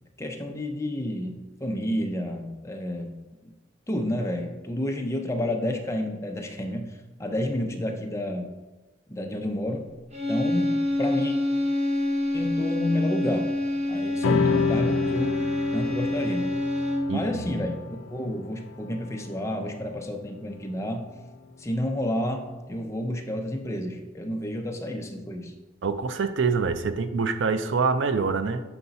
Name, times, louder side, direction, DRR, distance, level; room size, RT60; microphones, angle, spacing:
voice 1, 0.2-3.5 3.9-8.5 9.1-9.9 10.3-11.3 12.3-13.5 13.9-15.4 15.7-16.5 17.1-21.1 21.6-25.5, left 1 dB, 15° left, 3 dB, 0.6 m, -30 dB
sound 1, 10.1-17.3, left 1 dB, 30° right, 0.8 m, -27 dB
sound 2, 14.2-21.0, left 5 dB, 75° left, 0.4 m, -30 dB
voice 2, 25.8-28.6, right 4 dB, 60° right, 10 dB, 0.4 m, -25 dB
6.9 x 4.8 x 4.0 m, 1.1 s
head